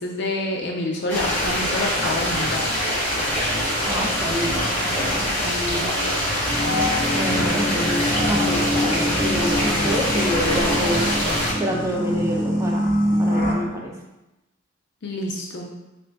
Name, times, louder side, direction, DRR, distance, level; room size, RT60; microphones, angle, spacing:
voice 1, 0.0-2.7 15.0-15.7, left 1 dB, 55° left, 0 dB, 0.4 m, -27 dB
sound 1, 1.1-11.5, equal, 10° left, 1.0 m, -24 dB
voice 2, 3.8-5.9 7.1-11.1 11.6-13.9, equal, 15° right, -2 dB, 0.5 m, -28 dB
sound 2, 6.5-13.5, equal, 40° left, 0.9 m, -24 dB
3.7 x 2.5 x 3.4 m, 0.99 s
head